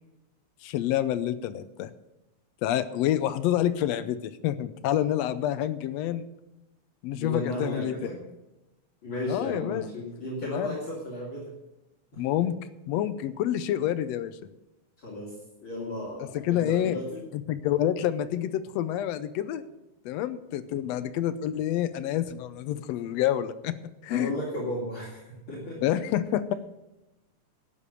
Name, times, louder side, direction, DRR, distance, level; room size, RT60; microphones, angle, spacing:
voice 1, 0.6-1.9 2.6-6.3 7.0-7.9 9.3-9.8 10.5-10.8 12.2-12.6 12.9-14.4 16.4-17.0 17.3-19.6 20.0-24.3 25.8-26.5, left 11 dB, 80° left, 13 dB, 1.6 m, -28 dB
voice 2, 7.1-8.2 9.0-11.5 12.1-12.2 15.0-15.3 15.6-17.3 24.1-25.8, left 1 dB, 40° left, -4 dB, 3.6 m, -34 dB
12.5 x 8.5 x 6.7 m, 0.97 s
omnidirectional pair, 3.5 m